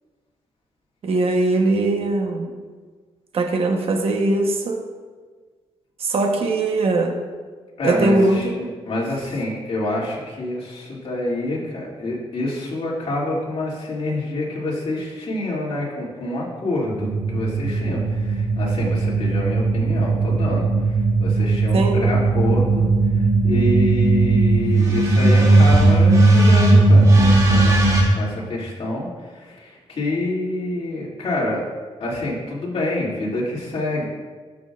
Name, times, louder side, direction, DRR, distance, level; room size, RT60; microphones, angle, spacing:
voice 1, 1.0-2.5 3.3-4.8 6.0-7.1 7.8-8.5 21.7-22.0, right 2 dB, 60° right, 3 dB, 1.0 m, -20 dB
voice 2, 7.8-31.6 32.0-34.0, left 1 dB, 55° left, -4 dB, 2.4 m, -27 dB
sound 1, 16.9-28.0, right 2 dB, 30° right, 2.4 m, -17 dB
13.0 x 6.2 x 2.4 m, 1.4 s
cardioid pair, 100°, 11 cm